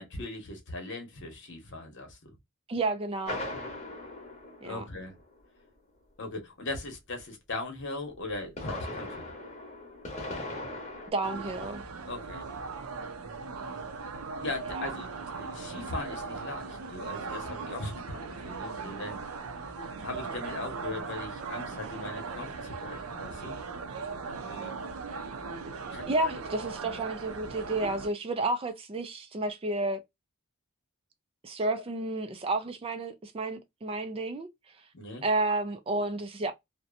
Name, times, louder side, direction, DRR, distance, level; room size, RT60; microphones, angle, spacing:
voice 1, 0.0-2.4 4.6-5.2 6.2-9.3 12.1-12.5 14.4-15.1 15.4-19.5 20.0-23.6 24.4-24.7 25.9-26.4 31.8-31.9 34.9-35.2, left 2 dB, 55° left, 1.0 m, -39 dB
voice 2, 2.7-3.4 4.6-4.8 11.1-11.8 14.7-14.8 26.1-30.0 31.4-34.5 35.2-36.5, right 2 dB, 25° right, 0.3 m, -31 dB
sound 1, 3.3-5.3 8.3-11.1, left 2 dB, 30° left, 1.0 m, -39 dB
sound 2, 11.2-28.1, right 4 dB, 80° right, 0.5 m, -39 dB
2.7 x 2.1 x 2.4 m
head